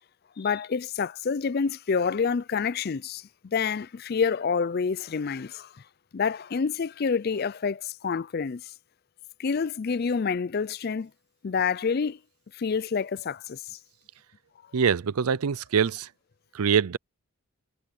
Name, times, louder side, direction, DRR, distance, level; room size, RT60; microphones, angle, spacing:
voice 1, 0.4-5.7 6.1-8.6 9.4-11.1 11.4-12.2 12.5-13.6, left 5 dB, 45° left, 0.4 m, -28 dB
voice 2, 14.7-16.1 16.5-17.0, right 7 dB, 90° right, 0.5 m, -24 dB
head